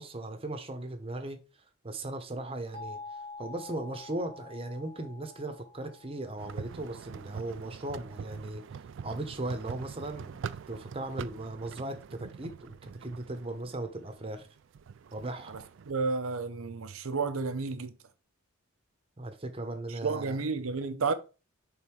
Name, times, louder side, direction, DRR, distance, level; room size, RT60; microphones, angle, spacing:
voice 1, 0.0-1.4 1.8-8.6 9.0-14.5 15.1-15.5 19.2-20.4, right 2 dB, 25° right, 0.9 m, -38 dB
sound 1, 2.7-7.4, left 3 dB, 25° left, 1.8 m, -47 dB
sound 2, 6.4-15.9, right 6 dB, 60° right, 0.3 m, -44 dB
voice 2, 15.5-17.9 19.9-21.1, right 4 dB, 80° right, 0.7 m, -32 dB
5.5 x 3.9 x 4.5 m
head